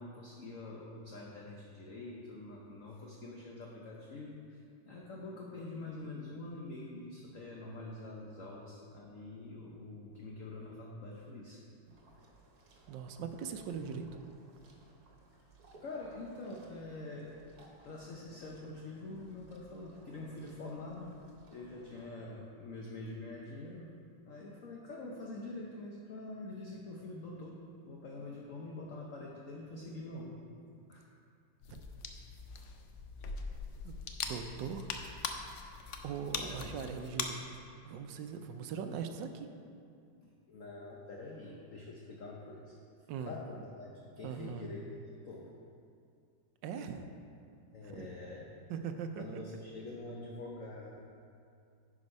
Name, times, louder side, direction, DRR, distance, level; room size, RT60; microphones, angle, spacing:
voice 1, 0.0-11.6 15.8-17.3 17.8-21.1 21.5-23.9 24.2-27.6 27.8-30.4 30.9-31.1 36.4-36.6 40.2-42.7 43.2-45.5 47.7-48.5 49.2-51.0, left 2 dB, 55° left, -2 dB, 1.0 m, -45 dB
sound 1, 11.9-22.1, right 1 dB, 55° right, 1.5 m, -59 dB
voice 2, 12.9-14.1 31.7-31.8 33.8-33.9 34.2-34.9 36.0-37.4 37.8-39.5 43.1-43.4 44.2-44.7 46.6-47.0 47.8-48.1 48.7-49.4, right 6 dB, 75° right, 7 dB, 1.3 m, -40 dB
sound 2, 31.6-37.3, left 5 dB, 85° left, 0.6 m, -41 dB
9.7 x 5.2 x 5.3 m, 2.4 s
omnidirectional pair, 2.0 m